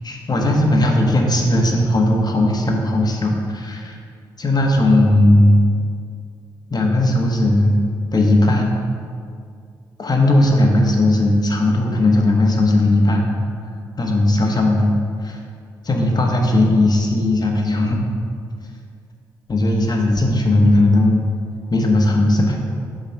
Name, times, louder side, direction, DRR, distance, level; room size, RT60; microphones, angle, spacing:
voice 1, 0.0-4.0 4.4-5.6 6.7-7.7 8.1-8.8 10.0-13.3 14.0-14.9 15.2-15.4 15.8-18.0 19.5-21.2 21.7-22.6, left 1 dB, 40° left, 1 dB, 1.3 m, -17 dB
7.4 x 4.0 x 5.7 m, 2.2 s
hypercardioid pair, 40°, 11 cm